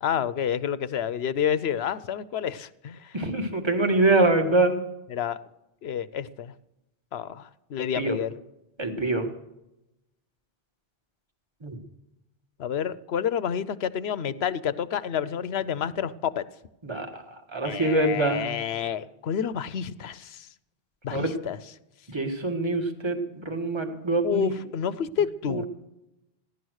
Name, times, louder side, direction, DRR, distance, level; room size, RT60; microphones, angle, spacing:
voice 1, 0.0-3.2 5.1-5.4 5.8-6.5 7.1-8.4 12.6-16.4 17.6-20.5 21.0-21.6 24.2-25.6, left 8 dB, 85° left, 15 dB, 1.0 m, -29 dB
voice 2, 3.1-4.8 7.9-8.2 8.8-9.3 11.6-11.8 16.8-17.2 17.5-18.5 21.1-21.3 22.1-24.6 25.5-25.6, right 2 dB, 25° right, 4 dB, 1.7 m, -24 dB
16.0 x 11.0 x 6.4 m, 0.90 s
omnidirectional pair, 1.0 m